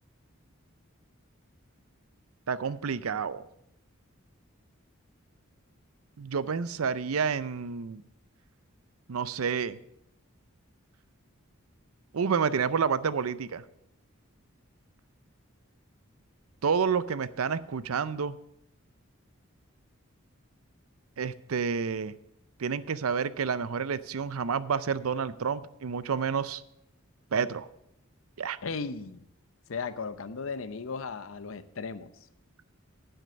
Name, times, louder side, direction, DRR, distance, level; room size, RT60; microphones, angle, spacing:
voice 1, 2.5-3.4 6.2-8.0 9.1-9.8 12.1-13.6 16.6-18.4 21.2-22.1 22.6-26.6 27.3-27.7 28.4-28.6, right 6 dB, 80° right, 16 dB, 0.5 m, -29 dB
voice 2, 28.6-29.2 29.7-32.1, left 4 dB, 70° left, 14 dB, 0.6 m, -36 dB
9.3 x 7.9 x 6.8 m, 0.79 s
head